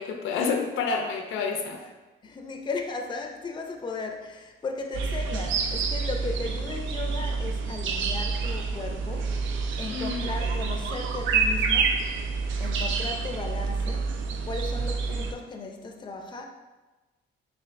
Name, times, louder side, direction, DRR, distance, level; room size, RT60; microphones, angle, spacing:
voice 1, 0.0-1.8 9.9-10.2, left 5 dB, 80° left, 3 dB, 0.5 m, -29 dB
voice 2, 2.2-12.0 12.6-14.0 14.5-16.4, left 3 dB, 25° left, 3 dB, 0.5 m, -36 dB
sound 1, 4.9-15.3, right 4 dB, 75° right, 0.4 m, -28 dB
5.7 x 2.5 x 2.5 m, 1.2 s
cardioid pair, 90°, 20 cm